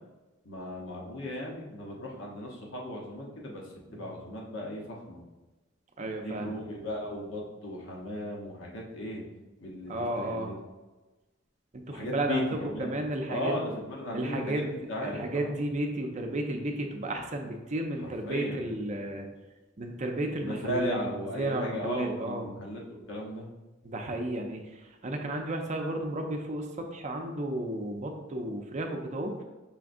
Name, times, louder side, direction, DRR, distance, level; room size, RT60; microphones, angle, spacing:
voice 1, 0.4-5.2 6.2-9.2 9.6-10.5 11.9-15.6 18.0-18.6 20.3-23.5, left 1 dB, 70° left, -2 dB, 1.1 m, -36 dB
voice 2, 6.0-6.6 9.9-10.5 11.7-12.4 12.8-13.6 14.1-14.7 15.0-19.3 19.8-21.0 21.4-22.5 23.8-29.4, right 1 dB, 35° right, 3 dB, 0.5 m, -33 dB
5.7 x 3.6 x 2.6 m, 1.1 s
head